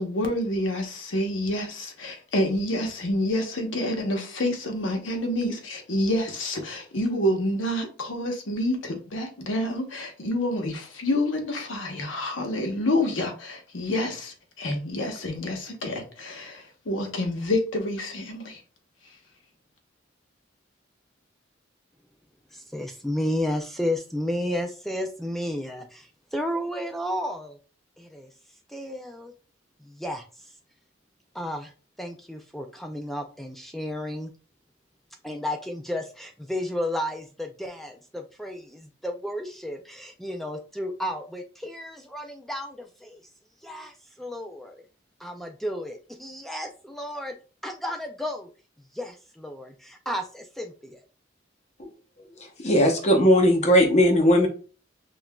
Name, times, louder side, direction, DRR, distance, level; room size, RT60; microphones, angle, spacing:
voice 1, 0.0-18.6, left 1 dB, 80° left, 1.0 m, -28 dB
voice 2, 22.5-27.6 28.0-28.3 28.7-29.3 29.8-30.5 31.3-31.7 32.0-34.3 35.2-43.2 43.6-44.8 45.2-47.3 47.6-48.5 48.9-51.0, left 1 dB, ahead, 0.3 m, -32 dB
voice 3, 52.6-54.5, equal, 35° left, 0.8 m, -18 dB
5.7 x 2.5 x 2.2 m
head